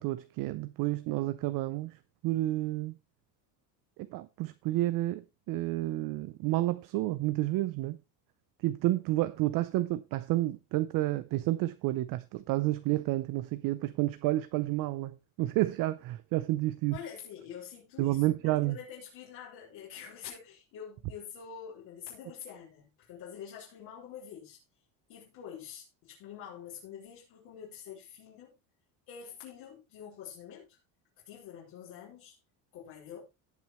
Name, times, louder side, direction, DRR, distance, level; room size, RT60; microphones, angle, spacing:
voice 1, 0.0-2.9 4.0-8.0 8.6-17.0 18.0-18.8, right 17 dB, 45° right, 0.6 m, -30 dB
voice 2, 16.9-24.6 25.1-28.6 29.1-30.8 31.2-32.4 32.7-33.2, left 8 dB, 55° left, 4.8 m, -46 dB
18.0 x 6.1 x 3.1 m
cardioid pair, 175°, 45 cm